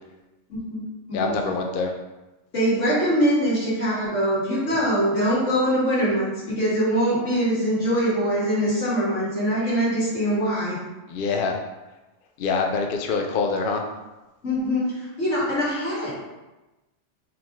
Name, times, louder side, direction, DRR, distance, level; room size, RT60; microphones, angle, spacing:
voice 1, 0.5-0.8 1.1-1.4 2.5-10.8 14.4-16.1, equal, 90° left, -8 dB, 2.2 m, -23 dB
voice 2, 1.1-1.9 11.1-11.6 12.4-13.8, left 4 dB, 60° left, 2 dB, 0.6 m, -25 dB
4.8 x 3.6 x 3.1 m, 1.1 s
omnidirectional pair, 1.2 m